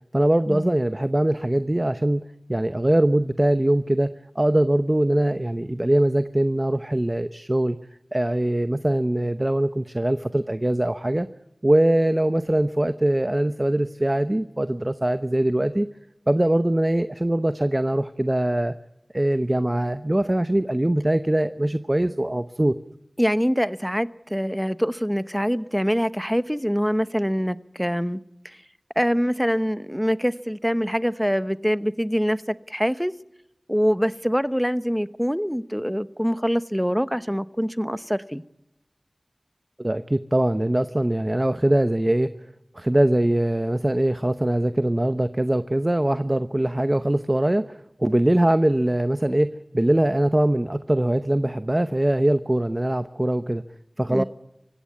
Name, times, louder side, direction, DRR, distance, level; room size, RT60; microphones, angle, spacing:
voice 1, 0.1-7.8 8.1-11.3 11.6-15.9 16.3-18.7 19.1-22.7 39.8-42.3 42.7-53.6 54.0-54.2, right 1 dB, 30° right, 12 dB, 0.8 m, -22 dB
voice 2, 23.2-28.2 28.4-28.6 29.0-33.1 33.7-38.4 54.1-54.2, equal, ahead, 14 dB, 1.0 m, -24 dB
25.0 x 16.0 x 9.5 m, 0.91 s
wide cardioid pair, 45°, 0 cm